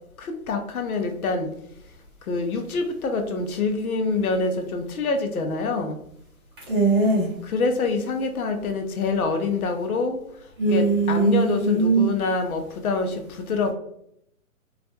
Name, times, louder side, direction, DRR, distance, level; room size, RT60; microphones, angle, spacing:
voice 1, 0.2-1.5 2.3-6.0 7.5-10.2 10.7-13.1 13.5-13.7, left 4 dB, 75° left, 5 dB, 0.6 m, -25 dB
voice 2, 6.7-7.3 10.6-12.1, right 3 dB, 15° right, -7 dB, 0.6 m, -20 dB
2.4 x 2.1 x 2.7 m, 0.76 s
figure-of-eight pair, 140°, 44 cm